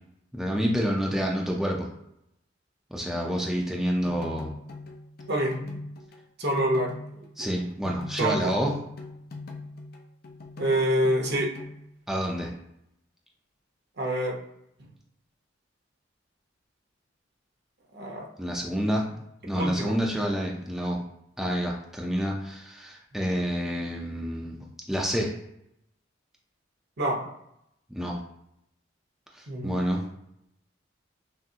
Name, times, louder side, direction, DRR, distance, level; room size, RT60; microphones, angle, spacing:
voice 1, 0.3-1.9 2.9-4.5 7.4-8.8 12.1-12.5 18.4-19.1 19.4-21.0 21.4-25.3 27.9-28.2 29.3-30.0, equal, ahead, -2 dB, 0.5 m, -28 dB
sound 1, 4.0-7.6 7.8-11.8, left 2 dB, 55° left, 0.6 m, -41 dB
voice 2, 5.3-5.8 6.4-6.9 8.2-8.5 10.6-11.5 14.0-14.4 17.9-18.2 19.6-20.0 27.0-27.2 29.5-29.8, right 1 dB, 60° right, 0 dB, 0.9 m, -26 dB
5.9 x 2.0 x 2.8 m, 0.78 s
head